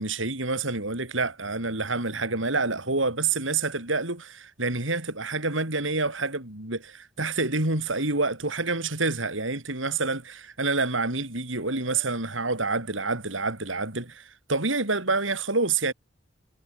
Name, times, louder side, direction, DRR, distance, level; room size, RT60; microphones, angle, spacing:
voice 1, 0.0-15.9, right 3 dB, 90° right, 6.0 m, -27 dB
head